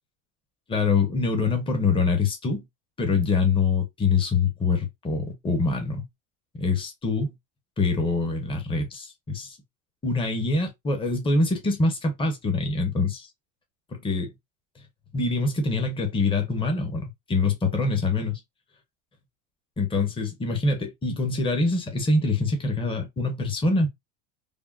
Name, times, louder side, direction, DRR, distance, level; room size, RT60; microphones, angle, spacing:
voice 1, 0.7-2.6 3.0-6.1 6.5-7.3 7.8-9.6 10.0-13.3 13.9-14.3 15.1-18.4 19.8-23.9, left 3 dB, 15° left, 0.8 m, -25 dB
3.5 x 2.1 x 2.3 m
supercardioid pair, 125°, 38 cm